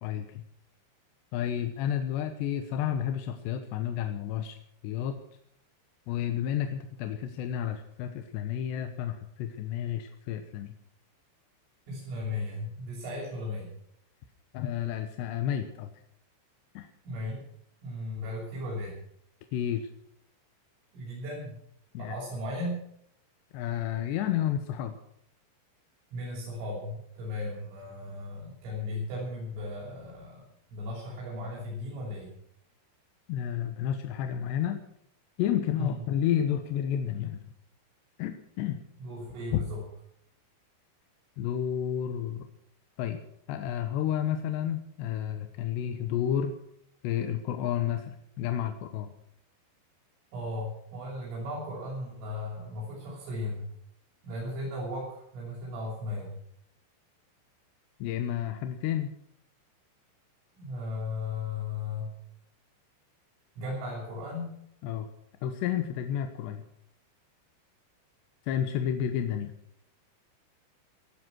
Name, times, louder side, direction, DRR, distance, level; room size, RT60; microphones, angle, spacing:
voice 1, 0.0-0.4 1.3-4.6 4.8-5.2 6.1-10.7 14.5-15.9 16.7-16.9 19.5-19.8 21.9-22.2 23.5-24.9 33.3-34.8 35.4-37.4 38.2-38.8 39.5-39.6 41.4-42.5 43.0-43.2 43.5-46.5 47.0-49.1 58.0-59.1 64.8-65.1 65.4-66.6 68.5-69.5, left 10 dB, 75° left, 7 dB, 2.8 m, -31 dB
voice 2, 11.9-13.7 17.0-17.4 17.8-19.0 20.9-21.6 22.0-22.8 26.1-30.4 30.7-32.3 35.8-36.0 39.0-39.8 50.3-53.7 54.2-56.4 60.6-62.1 63.6-64.5, left 2 dB, 80° right, -6 dB, 8.6 m, -36 dB
19.0 x 11.5 x 6.2 m, 0.70 s
omnidirectional pair, 5.7 m